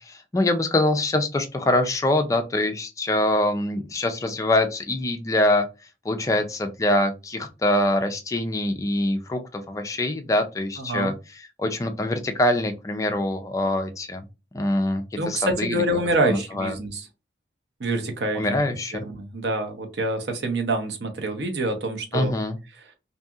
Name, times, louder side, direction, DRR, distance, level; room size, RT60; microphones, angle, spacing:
voice 1, 0.0-5.6 6.0-14.2 14.5-15.8 16.3-16.8 18.3-19.0 22.1-22.6, left 1 dB, 20° left, 7 dB, 0.3 m, -24 dB
voice 2, 10.8-11.1 15.1-17.1 17.8-18.6 19.0-22.3, right 1 dB, 70° right, 4 dB, 0.7 m, -26 dB
2.7 x 2.6 x 2.3 m, 0.27 s
head